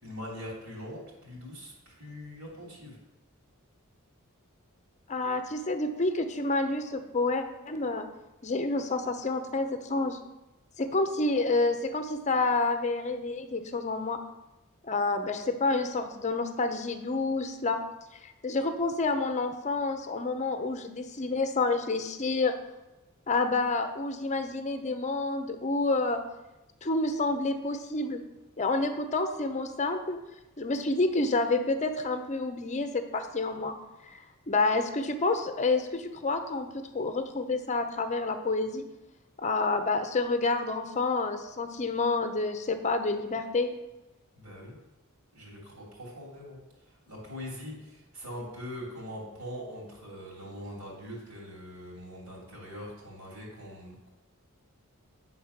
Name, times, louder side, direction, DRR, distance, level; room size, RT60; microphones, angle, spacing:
voice 1, 0.0-3.0 44.3-44.8 45.3-46.6 47.1-54.1, equal, 65° right, -3 dB, 2.9 m, -42 dB
voice 2, 5.1-8.1 8.4-10.2 10.8-14.2 14.8-17.8 18.2-22.6 23.3-26.2 26.8-28.2 28.6-30.2 30.6-33.7 34.0-34.2 34.5-38.8 39.4-43.7, left 3 dB, 30° left, 7 dB, 0.7 m, -29 dB
9.3 x 4.0 x 5.8 m, 0.98 s
head